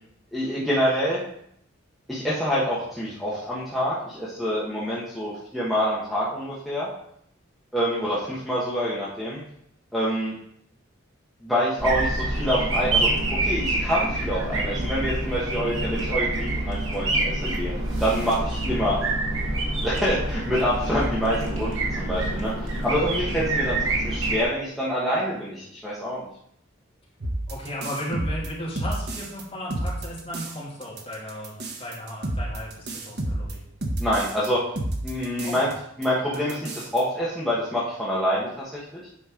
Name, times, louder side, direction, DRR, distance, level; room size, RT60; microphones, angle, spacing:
voice 1, 0.3-1.2 2.1-6.9 7.7-9.4 9.9-10.3 11.4-13.1 13.4-17.7 18.0-19.0 19.8-22.5 22.8-23.8 24.0-26.3 34.0-34.6 35.0-35.7 36.0-39.0, equal, ahead, -9 dB, 1.4 m, -26 dB
sound 1, 11.8-24.4, right 2 dB, 85° right, 1.9 m, -27 dB
voice 2, 23.2-23.5 27.5-33.6 35.4-35.7, equal, 30° left, -5 dB, 2.5 m, -35 dB
sound 2, 27.2-29.4 29.7-30.6 30.8-34.5 34.8-35.7 36.0-36.1 36.3-37.0, right 1 dB, 55° right, 1.1 m, -30 dB
8.5 x 5.3 x 3.8 m, 0.71 s
head